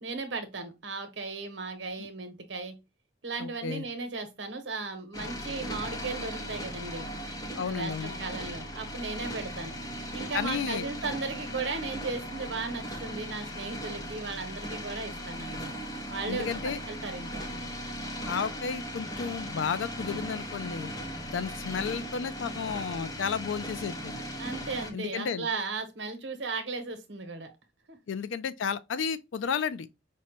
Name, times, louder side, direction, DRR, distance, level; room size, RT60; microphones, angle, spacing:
voice 1, 0.0-2.7 3.2-7.1 7.6-9.8 10.1-15.7 16.1-17.4 24.4-27.5 27.9-28.0, right 3 dB, 70° right, 0.9 m, -36 dB
voice 2, 3.4-3.8 7.6-8.1 10.3-10.9 16.3-16.8 18.2-20.9 21.3-24.2 24.9-25.5 28.1-29.9, left 6 dB, 90° left, 0.4 m, -32 dB
sound 1, 5.1-24.9, equal, 20° left, 0.7 m, -38 dB
5.2 x 2.1 x 2.9 m
head